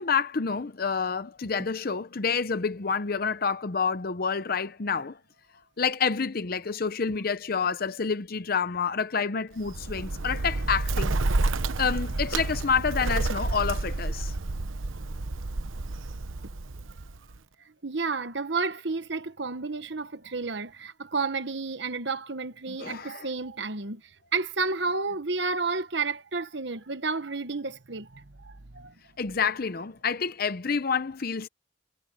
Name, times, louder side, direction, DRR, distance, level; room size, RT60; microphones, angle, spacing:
voice 1, 0.0-5.2 5.8-11.2 11.8-14.3 22.7-23.3 29.2-31.5, left 5 dB, 50° left, 0.7 m, -28 dB
Bird, 9.6-17.4, right 2 dB, 85° right, 1.0 m, -30 dB
voice 2, 17.8-24.0 24.3-28.9, right 4 dB, 60° right, 1.2 m, -31 dB
head